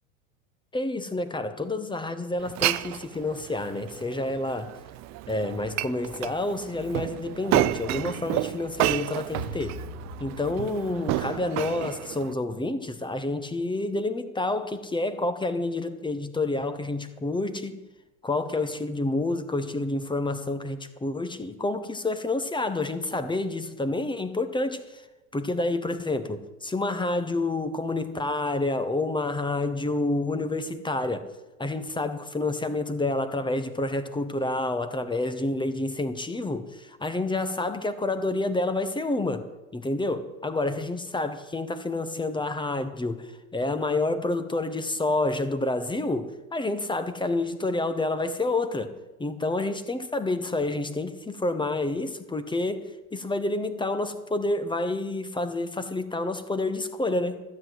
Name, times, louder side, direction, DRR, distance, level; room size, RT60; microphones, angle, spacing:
voice 1, 0.7-4.8 5.3-9.8 10.2-17.8 18.2-25.0 25.3-31.3 31.6-48.9 49.2-57.4, left 2 dB, 10° left, 1.2 m, -29 dB
Glass, 2.4-12.3, right 15 dB, 40° right, 0.6 m, -31 dB
sound 1, 9.3-12.5, right 1 dB, 75° left, 3.7 m, -41 dB
12.5 x 8.0 x 7.9 m
hypercardioid pair, 85°, 41 cm